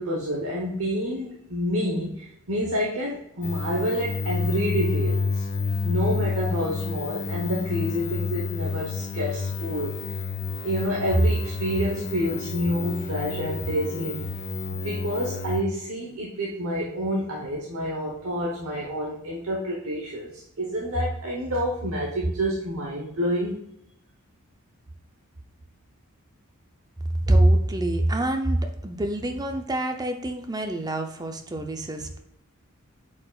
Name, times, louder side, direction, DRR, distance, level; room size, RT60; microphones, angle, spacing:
voice 1, 0.0-5.4 5.8-9.9 10.6-14.3 14.7-23.6, equal, 70° right, -3 dB, 1.1 m, -28 dB
sound 1, 3.4-15.6, left 4 dB, 50° left, 0.6 m, -30 dB
voice 2, 27.2-32.2, right 1 dB, 20° right, 5 dB, 0.6 m, -25 dB
8.3 x 4.9 x 2.4 m, 0.80 s
head